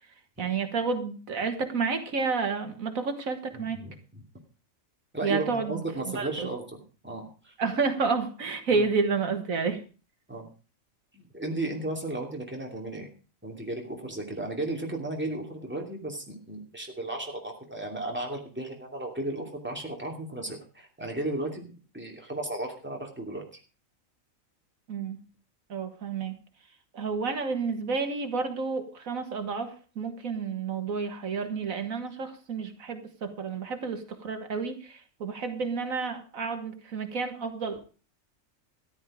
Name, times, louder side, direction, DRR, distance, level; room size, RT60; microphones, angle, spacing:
voice 1, 0.4-3.8 5.2-5.8 6.2-6.5 7.6-9.8 24.9-25.2 25.7-26.4 26.9-29.7 30.0-37.8, right 4 dB, 80° right, 7 dB, 1.9 m, -30 dB
voice 2, 3.5-4.2 5.1-7.5 8.7-8.9 10.3-10.5 11.1-13.1 13.4-23.6, right 2 dB, 10° right, 0 dB, 2.8 m, -35 dB
13.5 x 11.0 x 5.0 m, 0.37 s
omnidirectional pair, 1.4 m